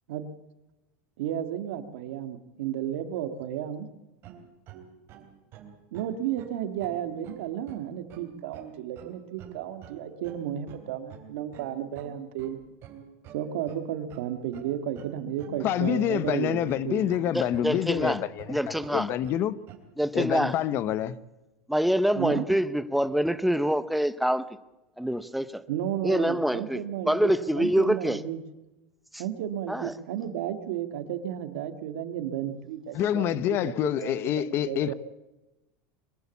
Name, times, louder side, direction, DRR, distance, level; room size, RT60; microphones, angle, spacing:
voice 1, 1.2-3.9 5.9-12.6 13.3-17.2 22.1-22.4 25.7-28.4 29.2-34.9, right 10 dB, 80° right, 1.9 m, -33 dB
sound 1, 4.2-19.8, right 8 dB, 35° right, 3.5 m, -47 dB
voice 2, 15.6-18.6 18.9-19.6 20.1-21.2 32.9-34.9, left 11 dB, 35° left, 0.8 m, -27 dB
voice 3, 17.3-18.2 18.5-19.1 20.0-20.5 21.7-24.4 25.0-25.6 26.0-26.8 27.1-28.2 29.1-29.2 29.7-29.9, equal, ahead, 0.7 m, -25 dB
23.0 x 14.5 x 8.3 m
supercardioid pair, 160°, 7 cm